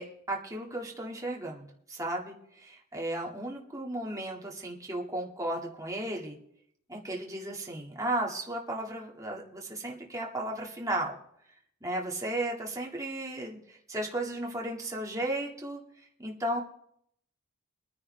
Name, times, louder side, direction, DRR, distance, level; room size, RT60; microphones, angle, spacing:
voice 1, 0.0-6.4 6.9-11.2 11.8-15.8 16.2-16.6, right 1 dB, 15° right, -2 dB, 1.8 m, -35 dB
24.5 x 9.7 x 3.2 m, 0.72 s
head